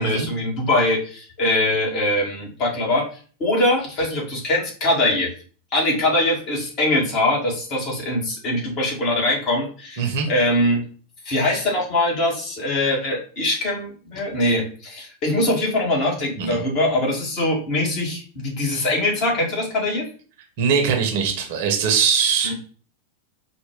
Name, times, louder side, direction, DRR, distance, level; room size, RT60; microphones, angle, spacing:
voice 1, 0.0-3.0 3.4-5.3 5.7-10.8 11.3-20.0 22.4-22.5, left 1 dB, 35° left, -3 dB, 1.7 m, -22 dB
voice 2, 10.0-10.3 16.4-16.6 20.6-22.5, right 6 dB, 50° right, 4 dB, 0.9 m, -21 dB
4.4 x 2.5 x 3.6 m, 0.40 s
figure-of-eight pair, 90°, 0 cm